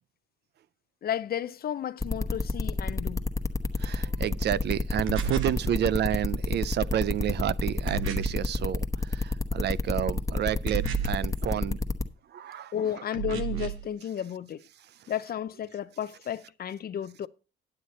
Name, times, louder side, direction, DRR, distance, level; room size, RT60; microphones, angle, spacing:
voice 1, 1.0-3.2 12.7-14.6 15.1-17.3, left 9 dB, 50° left, 0.6 m, -33 dB
sound 1, 2.0-12.0, left 3 dB, 15° left, 1.0 m, -28 dB
voice 2, 3.8-11.8 12.3-12.7 15.0-15.1, right 11 dB, 60° right, 0.4 m, -30 dB
sound 2, 5.1-5.6 7.9-8.5 10.7-11.3 13.1-13.9, right 11 dB, 90° right, 1.0 m, -33 dB
9.9 x 7.9 x 4.2 m
cardioid pair, 90°, 20 cm